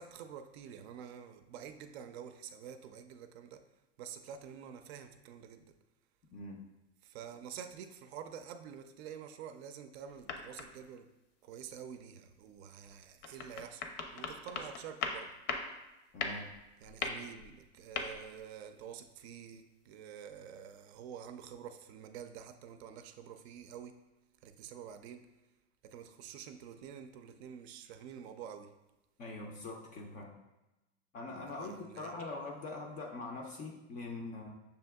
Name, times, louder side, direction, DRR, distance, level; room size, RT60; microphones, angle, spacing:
voice 1, 0.0-3.6 4.0-5.6 7.0-11.1 11.4-13.8 14.1-15.3 16.8-24.0 24.4-25.3 25.8-28.7 31.5-32.3, right 8 dB, 60° right, 9 dB, 0.5 m, -48 dB
sound 1, 10.1-10.8 13.2-15.8 16.1-18.4, left 5 dB, 70° left, 0.7 m, -40 dB
voice 2, 16.1-16.5 29.2-30.3 31.1-34.5, left 2 dB, 25° left, 1 dB, 0.3 m, -43 dB
6.6 x 2.7 x 2.2 m, 1.0 s
supercardioid pair, 125°, 37 cm